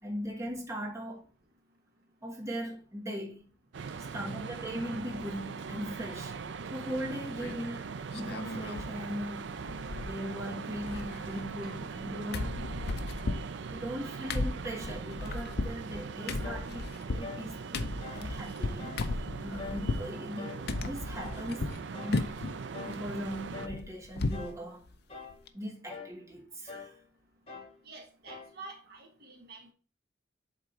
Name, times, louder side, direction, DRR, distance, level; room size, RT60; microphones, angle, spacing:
voice 1, 0.0-1.2 2.2-3.4 4.1-6.4 6.7-9.6 9.9-12.7 13.6-22.4 22.9-24.8 25.5-27.0, equal, 15° right, 1.3 m, -39 dB
sound 1, 3.7-23.7, right 5 dB, 75° right, 0.5 m, -41 dB
sound 2, 7.4-7.8 8.1-8.9 9.2-9.3 9.6-10.4 10.7-12.0 12.3-20.1 20.7-21.8 22.1-22.6 22.9-24.5 24.9-25.0 25.3-25.5, left 2 dB, 60° left, 0.6 m, -35 dB
sound 3, 16.4-16.7 17.2-17.5 18.0-18.3 18.8-19.1 19.6-19.9 20.4-20.7 21.2-21.4 21.9-22.2 22.7-23.0 23.5-23.8 24.3-24.6 25.1-25.4 25.9-26.2 26.7-27.0 27.5-27.8 28.3-28.6, left 5 dB, 35° left, 2.4 m, -44 dB
voice 2, 27.8-29.7, right 3 dB, 55° right, 1.3 m, -48 dB
7.9 x 3.7 x 4.5 m
head